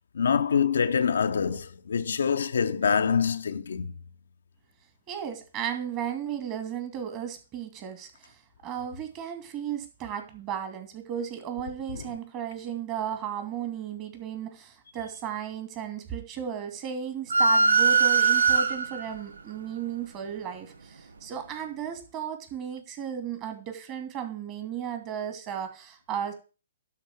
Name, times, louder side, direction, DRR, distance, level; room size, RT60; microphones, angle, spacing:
voice 1, 0.1-3.9 12.0-12.1, left 6 dB, 70° left, 0.7 m, -25 dB
voice 2, 5.1-8.4 8.6-26.3, right 8 dB, 30° right, 2.7 m, -35 dB
sound 1, 17.3-19.1, right 4 dB, 75° right, 0.9 m, -21 dB
11.5 x 4.4 x 7.8 m
figure-of-eight pair, 125°, 0 cm